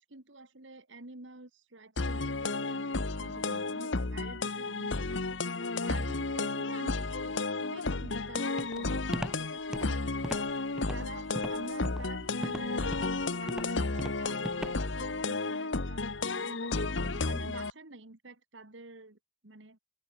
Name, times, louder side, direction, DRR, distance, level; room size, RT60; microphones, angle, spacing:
voice 1, 0.0-5.4 5.9-10.1 10.9-13.0 13.3-16.1 16.4-19.2 19.4-19.8, right 2 dB, 65° right, 2.3 m, -49 dB
sound 1, 2.0-17.7, left 3 dB, 65° left, 1.3 m, -33 dB
Walk footsteps, 8.6-15.0, equal, 5° right, 0.9 m, -40 dB
open air
head